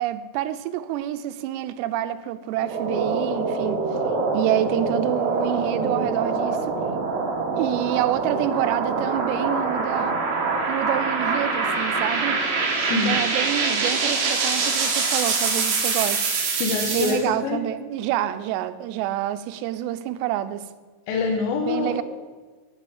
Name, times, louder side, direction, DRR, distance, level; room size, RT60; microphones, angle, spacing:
voice 1, 0.0-3.9 4.3-6.8 7.6-10.2 10.7-12.4 12.9-16.3 16.9-20.7 21.7-22.0, right 12 dB, 85° right, 2.8 m, -27 dB
sound 1, 2.5-17.2, right 4 dB, 65° right, 3.5 m, -24 dB
voice 2, 12.8-13.2 16.6-17.6 21.1-22.0, left 5 dB, 70° left, 2.6 m, -25 dB
10.0 x 9.1 x 7.3 m
omnidirectional pair, 4.9 m